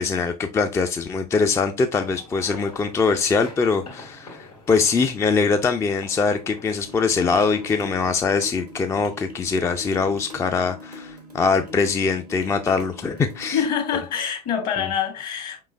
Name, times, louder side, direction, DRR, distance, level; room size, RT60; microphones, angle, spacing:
voice 1, 0.0-13.6, left 4 dB, 15° left, 0.3 m, -22 dB
sound 1, 1.9-8.4, left 3 dB, 85° left, 2.0 m, -45 dB
sound 2, 6.8-13.8, left 2 dB, 90° right, 0.7 m, -41 dB
voice 2, 13.5-15.6, left 8 dB, 45° left, 1.2 m, -25 dB
4.8 x 3.6 x 2.4 m
figure-of-eight pair, 70°, 20 cm